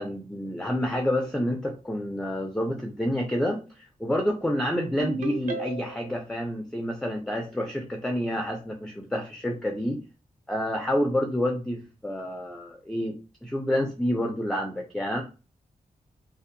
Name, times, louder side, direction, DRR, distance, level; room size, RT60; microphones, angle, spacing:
voice 1, 0.0-10.0 10.5-13.2 13.4-15.2, left 1 dB, 5° left, 3 dB, 0.4 m, -28 dB
Ringtone, 5.0-6.2, right 5 dB, 65° right, 0.6 m, -34 dB
2.6 x 2.0 x 2.5 m, 0.33 s
wide cardioid pair, 90°, 15 cm